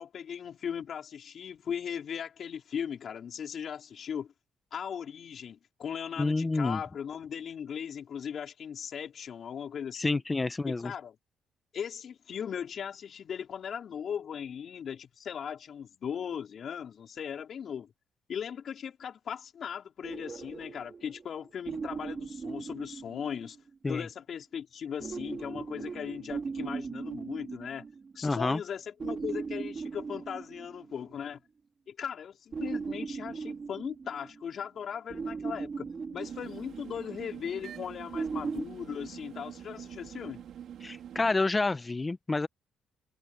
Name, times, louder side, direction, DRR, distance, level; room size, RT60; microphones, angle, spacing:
voice 1, 0.0-4.3 4.7-10.2 10.6-11.1 11.7-17.9 18.3-23.6 23.9-27.9 28.1-31.4 31.9-35.9 36.1-40.4, left 8 dB, 60° left, 4.8 m, -38 dB
voice 2, 6.2-6.8 10.0-10.9 23.8-24.1 28.2-28.6 40.8-42.5, left 3 dB, 20° left, 1.2 m, -28 dB
sound 1, 20.0-23.7 25.0-28.3 29.0-31.1 32.5-34.6 35.1-37.1 38.1-38.6, right 5 dB, 40° right, 4.0 m, -38 dB
sound 2, 36.2-41.3, right 9 dB, 70° right, 2.6 m, -45 dB
cardioid pair, 90°, 0 cm